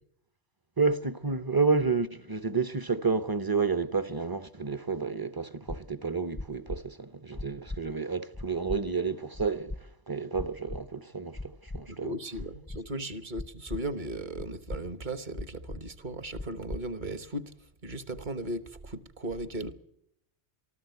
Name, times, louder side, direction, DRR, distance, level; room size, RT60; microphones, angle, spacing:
voice 1, 0.8-12.2, right 4 dB, 25° right, 0.7 m, -30 dB
sound 1, 5.7-5.8 6.3-6.8 7.3-7.8 8.3-8.8 9.3-9.8 10.3-10.8 11.3-11.8 12.3-12.8 13.3-13.8 14.3-14.8 15.3-15.8 16.3-16.8, left 2 dB, 15° left, 0.5 m, -37 dB
voice 2, 11.9-17.5 17.8-19.8, right 1 dB, 45° right, 1.3 m, -37 dB
23.5 x 14.0 x 8.1 m
omnidirectional pair, 1.1 m